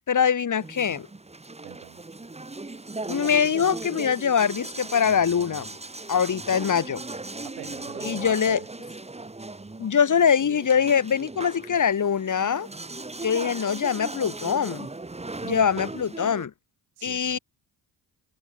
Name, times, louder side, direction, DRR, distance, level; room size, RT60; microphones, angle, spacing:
voice 1, 0.1-1.1 3.1-5.7 6.1-7.0 8.0-8.6 9.8-12.7 13.2-14.9 15.4-16.5 17.0-17.4, left 7 dB, 40° left, 1.2 m, -23 dB
sound 1, 0.6-16.5, right 2 dB, 15° right, 1.3 m, -38 dB
voice 2, 1.6-2.0 7.4-8.7 17.0-17.4, right 24 dB, 85° right, 3.9 m, -45 dB
hypercardioid pair, 50°, 48 cm